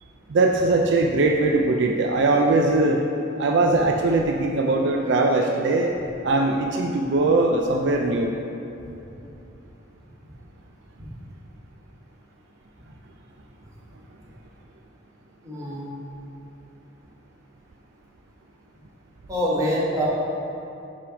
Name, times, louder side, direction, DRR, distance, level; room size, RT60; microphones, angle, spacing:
voice 1, 0.3-3.0 3.4-5.9 6.2-8.3, right 2 dB, 65° right, 2 dB, 0.4 m, -20 dB
voice 2, 15.4-15.8 19.3-20.0, equal, 20° right, -7 dB, 1.5 m, -24 dB
5.7 x 4.9 x 5.1 m, 2.9 s
head